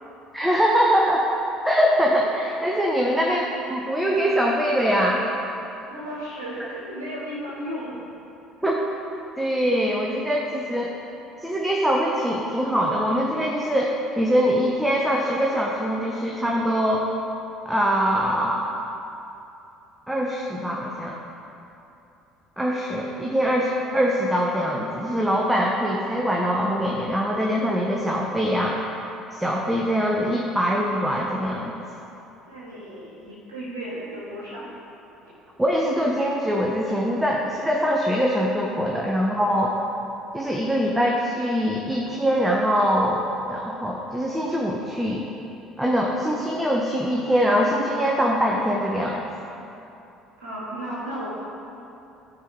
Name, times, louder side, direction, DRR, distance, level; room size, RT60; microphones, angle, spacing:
voice 1, 0.3-1.3 1.6-5.2 8.6-8.8 9.4-10.9 11.4-17.1 17.6-18.7 20.1-21.2 22.6-28.8 29.3-31.7 35.6-39.7 40.3-45.3 45.8-49.2, equal, 10° right, -2 dB, 1.0 m, -23 dB
voice 2, 5.9-8.0 32.5-34.8 50.4-51.3, equal, 75° right, -9 dB, 1.9 m, -34 dB
13.5 x 4.7 x 4.7 m, 2.9 s
figure-of-eight pair, 60°, 0 cm